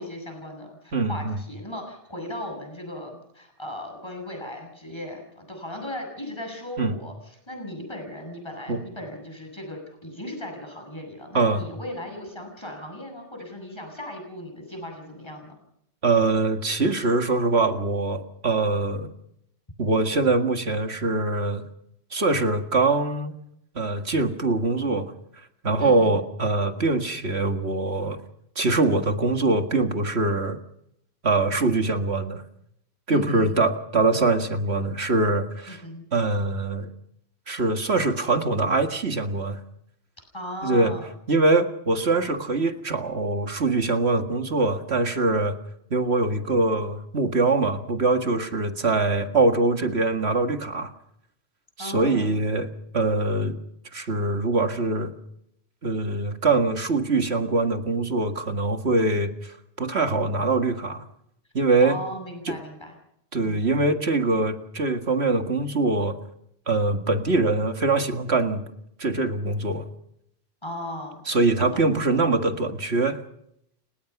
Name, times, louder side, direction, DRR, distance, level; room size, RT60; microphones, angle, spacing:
voice 1, 0.0-15.5 25.8-26.2 33.1-33.6 35.7-36.0 40.3-41.1 51.8-52.4 61.8-62.9 63.4-63.6 70.6-71.2 71.6-72.1, left 1 dB, 20° left, 3 dB, 7.9 m, -37 dB
voice 2, 0.9-1.4 6.8-6.9 8.7-8.8 11.3-11.6 16.0-19.1 19.8-21.6 22.1-23.3 23.8-25.1 25.6-28.2 28.6-30.6 31.2-32.4 33.1-35.8 36.1-36.9 37.5-39.6 40.6-40.9 41.3-45.6 45.9-50.9 51.8-52.7 52.9-53.6 53.9-55.1 55.8-61.1 61.5-62.0 62.5-62.6 63.3-66.2 66.7-68.6 69.0-69.9 71.3-73.2, right 3 dB, 60° right, 6 dB, 2.1 m, -23 dB
29.5 x 18.0 x 6.0 m, 0.75 s
omnidirectional pair, 1.2 m